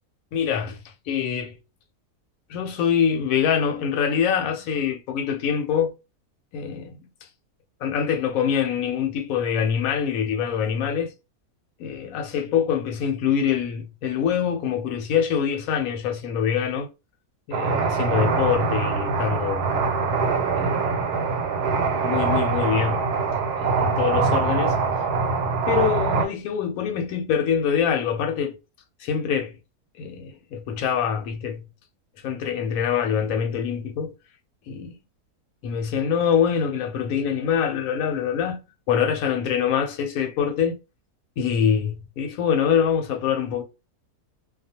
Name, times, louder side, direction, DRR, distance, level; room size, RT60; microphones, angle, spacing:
voice 1, 0.3-0.8 1.1-1.6 2.5-5.9 6.5-7.0 7.8-11.1 11.8-16.9 17.5-19.7 20.6-21.0 22.0-23.1 23.6-24.8 25.7-28.6 29.0-29.5 30.0-31.6 32.2-34.1 34.7-34.9 35.6-38.6 38.9-40.8 41.4-43.6, left 8 dB, 70° left, 1.0 m, -24 dB
sound 1, 17.5-26.3, right 4 dB, 90° right, 1.1 m, -23 dB
2.4 x 2.3 x 2.7 m
omnidirectional pair, 1.7 m